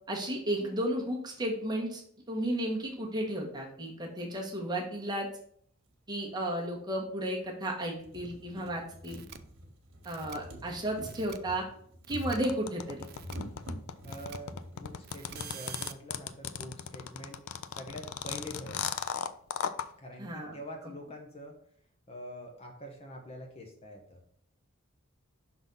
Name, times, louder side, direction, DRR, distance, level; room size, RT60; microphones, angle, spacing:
voice 1, 0.1-2.0 2.3-5.3 6.1-9.2 10.0-11.6 12.1-13.1 20.2-20.6, right 1 dB, 20° right, -1 dB, 1.1 m, -33 dB
sound 1, 5.9-6.0 6.9-7.0 7.5-7.6 7.9-15.4 16.4-16.5 16.7-16.8, equal, 65° right, 1.5 m, -46 dB
sound 2, 9.0-9.4 10.0-10.4 11.0-11.4 12.0-12.4 13.0-13.4 14.0-14.4 15.0-15.9, right 10 dB, 45° right, 0.4 m, -47 dB
sound 3, 12.4-19.9, left 8 dB, 75° left, 0.4 m, -36 dB
voice 2, 14.0-17.4 17.8-19.1 20.0-21.6 22.1-24.2, equal, 30° left, 2 dB, 0.8 m, -45 dB
5.8 x 4.0 x 5.2 m, 0.64 s
head